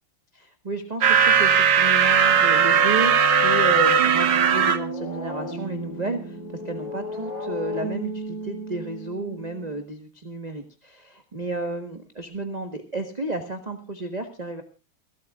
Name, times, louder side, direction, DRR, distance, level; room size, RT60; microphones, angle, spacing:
voice 1, 0.3-6.4 6.6-14.6, right 2 dB, 25° right, 6 dB, 1.1 m, -32 dB
sound 1, 1.0-4.8, right 8 dB, 50° right, 1.0 m, -18 dB
sound 2, 2.0-9.8, equal, 55° left, 5.7 m, -31 dB
29.5 x 13.0 x 2.4 m, 0.30 s
omnidirectional pair, 2.4 m